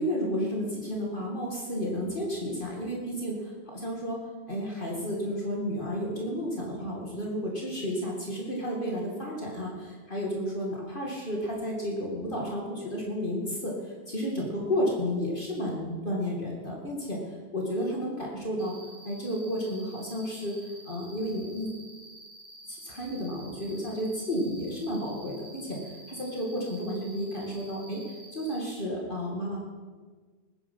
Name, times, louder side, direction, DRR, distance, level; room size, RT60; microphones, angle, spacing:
voice 1, 0.0-4.2 4.5-18.8 19.0-21.7 22.7-28.0 28.3-29.6, equal, 55° left, -2 dB, 2.5 m, -32 dB
Cricket, 18.6-28.6, right 1 dB, 75° right, 1.8 m, -50 dB
20.0 x 9.9 x 5.5 m, 1.4 s
omnidirectional pair, 1.1 m